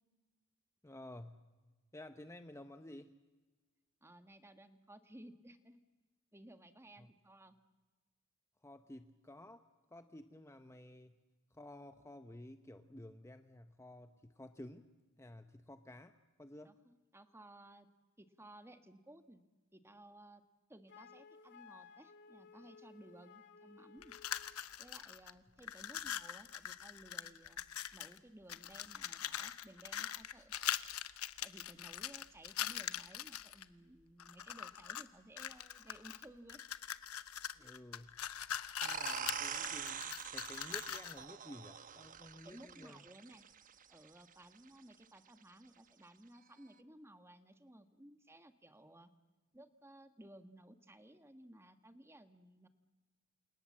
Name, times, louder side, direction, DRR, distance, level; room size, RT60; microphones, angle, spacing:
voice 1, 0.8-1.5 1.9-3.1 7.0-7.1 8.6-11.1 11.5-14.9 15.2-16.8 37.5-38.2 38.8-43.0, left 1 dB, 15° left, 8 dB, 0.8 m, -53 dB
voice 2, 4.0-5.8 6.3-7.6 16.6-17.9 18.2-19.4 19.7-20.4 20.7-24.1 24.8-27.6 27.9-30.5 31.4-36.6 37.6-37.8 42.4-43.4 43.9-49.1 49.5-52.7, right 1 dB, 10° right, 9 dB, 1.5 m, -58 dB
Wind instrument woodwind instrument, 20.9-24.6, left 5 dB, 55° left, 2.2 m, -58 dB
sound 1, 24.0-25.3 25.6-28.2 28.5-33.6 34.2-35.1 35.4-41.2, left 10 dB, 75° left, 1.0 m, -42 dB
sound 2, 38.8-44.2, right 7 dB, 40° right, 1.0 m, -44 dB
29.0 x 27.5 x 7.5 m, 1.3 s
head